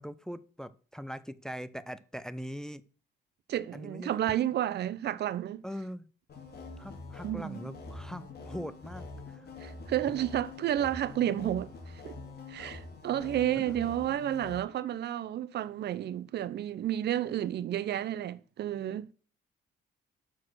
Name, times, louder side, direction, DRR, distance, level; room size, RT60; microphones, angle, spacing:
voice 1, 0.0-2.8 3.7-4.4 5.6-6.1 6.8-9.5 12.6-12.7 13.6-13.8, equal, 5° left, 0.5 m, -41 dB
voice 2, 3.5-5.6 7.2-7.6 9.6-12.2 12.5-19.1, right 11 dB, 60° right, 0.5 m, -31 dB
sound 1, 6.3-14.6, left 3 dB, 55° left, 2.0 m, -45 dB
6.1 x 4.7 x 6.1 m
cardioid pair, 90°, 20 cm